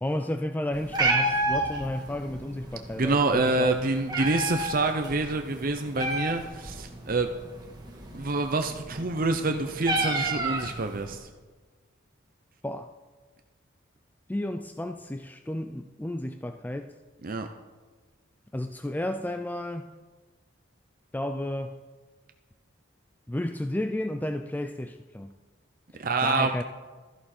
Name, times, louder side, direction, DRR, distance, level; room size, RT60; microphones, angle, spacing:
voice 1, 0.0-3.8 12.6-12.9 14.3-16.9 18.5-19.9 21.1-21.8 23.3-25.3 25.9-26.6, left 1 dB, 10° left, 8 dB, 0.4 m, -32 dB
Meow, 0.7-11.1, right 2 dB, 20° right, 1.9 m, -32 dB
voice 2, 3.0-7.3 8.1-11.3 17.2-17.5 26.0-26.5, right 3 dB, 45° right, 6 dB, 0.7 m, -27 dB
16.0 x 13.5 x 4.4 m, 1.3 s
head